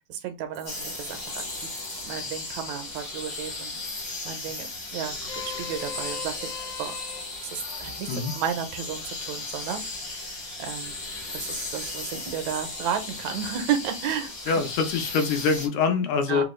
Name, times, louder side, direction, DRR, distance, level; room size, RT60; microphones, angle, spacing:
voice 1, 0.1-1.4 2.0-3.8 4.2-6.3 6.8-6.9 7.5-8.1 8.3-10.2 10.6-10.9 11.3-14.5 16.3-16.4, right 8 dB, 80° right, 8 dB, 1.8 m, -32 dB
sound 1, 0.5-4.1 4.4-4.6 4.9-5.5 6.0-6.8 7.1-8.8 9.1-9.3 9.6-10.2 10.5-10.6 10.9-11.6 11.8-11.9 12.1-14.0 14.5-14.8, right 3 dB, 55° right, 0.5 m, -49 dB
sound 2, 0.7-15.7, left 3 dB, 50° left, 0.9 m, -36 dB
Vehicle horn car horn honking, 5.0-11.4, left 8 dB, 70° left, 1.6 m, -44 dB
voice 2, 14.5-16.4, left 5 dB, 85° left, 6 dB, 2.2 m, -24 dB
4.9 x 2.3 x 3.0 m, 0.29 s
omnidirectional pair, 3.4 m